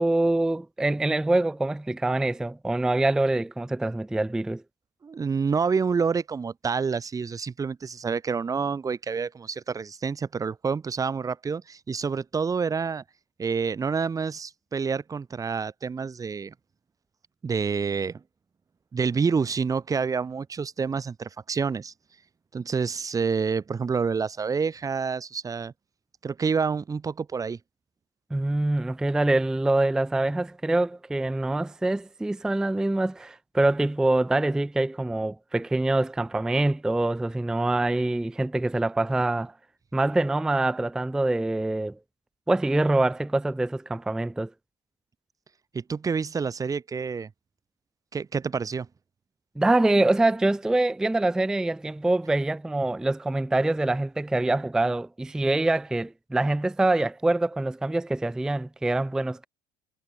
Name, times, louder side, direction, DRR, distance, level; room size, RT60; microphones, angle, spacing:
voice 1, 0.0-4.6 28.3-39.5 39.9-42.0 42.5-44.5 49.6-59.5, right 2 dB, 5° right, 0.5 m, -25 dB
voice 2, 5.0-13.0 13.4-16.5 17.4-18.2 18.9-21.9 22.5-25.7 26.2-27.6 45.7-47.3 48.1-48.9, right 5 dB, 20° right, 3.4 m, -28 dB
cardioid pair, 145°, 17 cm